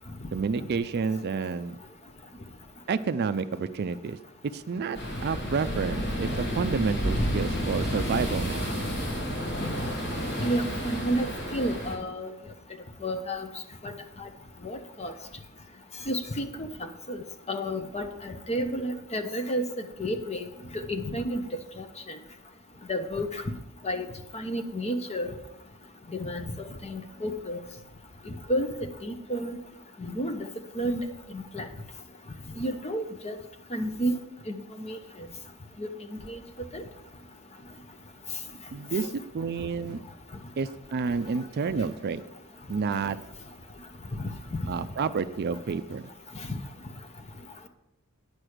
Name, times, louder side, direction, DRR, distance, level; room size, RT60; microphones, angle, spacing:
voice 1, 0.3-1.8 2.9-4.2 4.5-8.7 38.7-40.0 40.6-42.2 42.7-43.2 44.7-46.1, right 5 dB, 45° right, 12 dB, 0.4 m, -30 dB
sound 1, 4.9-12.0, equal, 50° left, 3.4 m, -30 dB
voice 2, 10.4-12.3 13.0-13.5 13.8-13.9 14.2-14.3 14.6-15.1 16.1-16.7 17.1-19.6 20.0-20.5 20.7-21.4 21.8-21.9 22.9-23.4 23.8-24.1 24.3-25.3 26.2-26.5 26.8-27.6 28.3-28.7 29.0-29.6 30.0-30.5 30.7-31.0 31.3-31.6 32.6-33.4 33.7-34.2 34.5-35.0 35.8-35.9 36.3-36.4 36.7-36.8 44.2-44.3 46.5-46.6, equal, 30° left, 5 dB, 0.9 m, -31 dB
9.9 x 6.2 x 5.0 m, 0.84 s
head